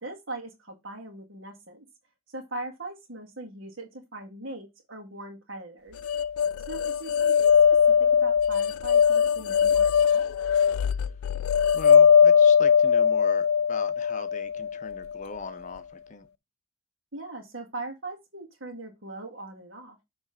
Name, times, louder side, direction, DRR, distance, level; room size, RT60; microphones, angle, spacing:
voice 1, 0.0-1.8 2.3-6.0 6.6-7.8 8.2-10.2 17.1-20.0, right 2 dB, 65° right, 1.7 m, -40 dB
sound 1, 6.0-15.2, left 7 dB, 85° left, 0.3 m, -20 dB
voice 2, 11.7-16.3, left 4 dB, 35° left, 0.6 m, -40 dB
7.1 x 3.2 x 5.6 m
head